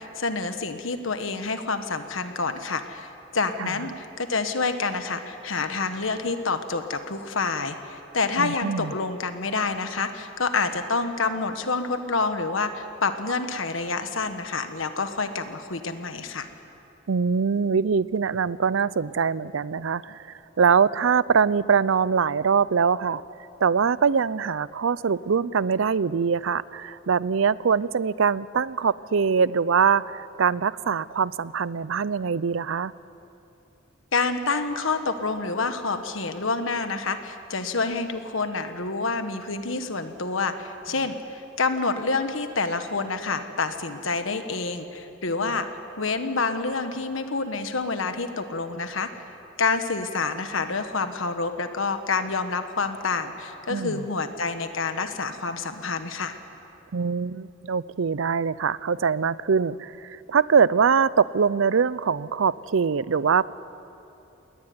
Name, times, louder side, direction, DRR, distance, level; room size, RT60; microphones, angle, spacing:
voice 1, 0.0-3.1 3.3-16.5 34.1-45.7 46.0-49.1 49.6-56.4, left 4 dB, 70° left, 8 dB, 1.4 m, -28 dB
voice 2, 8.4-8.9 17.1-23.2 23.6-32.9 45.4-45.6 53.7-54.0 56.9-63.5, right 6 dB, 70° right, 19 dB, 0.5 m, -23 dB
21.5 x 18.5 x 9.5 m, 2.9 s
head